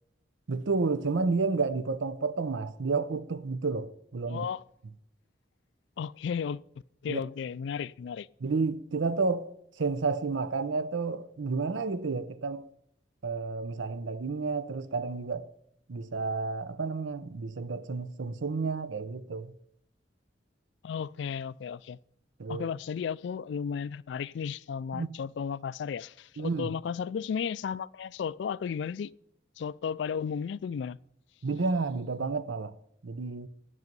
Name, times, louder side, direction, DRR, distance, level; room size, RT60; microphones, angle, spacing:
voice 1, 0.5-4.5 7.1-7.2 8.4-12.7 13.2-15.5 15.9-19.5 22.4-22.7 24.9-25.1 26.4-26.7 31.4-32.7 33.0-33.5, right 4 dB, 85° right, 0.6 m, -31 dB
voice 2, 4.3-4.6 6.0-6.6 7.0-8.3 20.8-22.0 22.5-29.1 29.6-31.0, left 7 dB, 70° left, 0.3 m, -34 dB
11.0 x 9.5 x 5.3 m
head